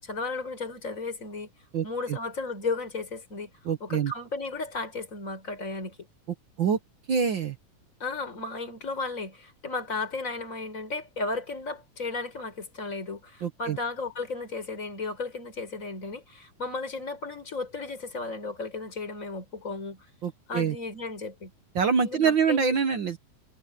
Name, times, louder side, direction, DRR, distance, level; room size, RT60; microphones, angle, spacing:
voice 1, 0.0-1.5 1.8-3.5 3.8-6.0 8.0-20.1 20.5-21.5 22.0-22.8, left 3 dB, 25° left, 5.7 m, -34 dB
voice 2, 1.7-2.2 3.6-4.1 6.6-6.8 7.1-7.6 13.4-13.8 20.2-20.8 21.7-23.2, right 6 dB, 60° right, 1.3 m, -25 dB
omnidirectional pair, 3.6 m